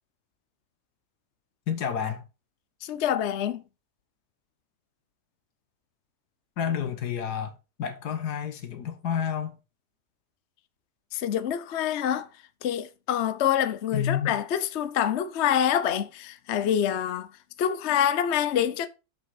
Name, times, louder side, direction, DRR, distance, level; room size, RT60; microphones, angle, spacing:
voice 1, 1.7-2.2 6.6-9.6 13.9-14.4, left 8 dB, 80° left, 1.8 m, -30 dB
voice 2, 2.8-3.6 11.1-12.3 12.6-17.3 17.6-18.9, left 9 dB, 55° left, 0.9 m, -26 dB
6.9 x 6.3 x 4.7 m
omnidirectional pair, 1.7 m